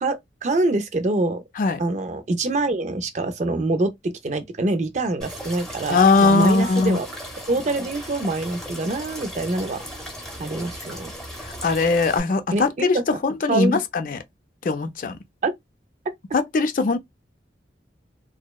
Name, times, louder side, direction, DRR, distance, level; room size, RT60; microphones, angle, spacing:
voice 1, 0.0-1.4 1.8-7.1 7.5-9.8 10.4-11.1 12.5-13.0 13.5-13.8 15.4-15.5, right 2 dB, 40° right, 0.4 m, -25 dB
sound 1, 5.2-12.2, equal, 5° left, 0.7 m, -37 dB
voice 2, 5.9-7.0 11.4-13.0 13.2-14.2 14.6-15.2 16.3-17.0, left 3 dB, 45° left, 0.4 m, -20 dB
2.6 x 2.1 x 2.2 m
head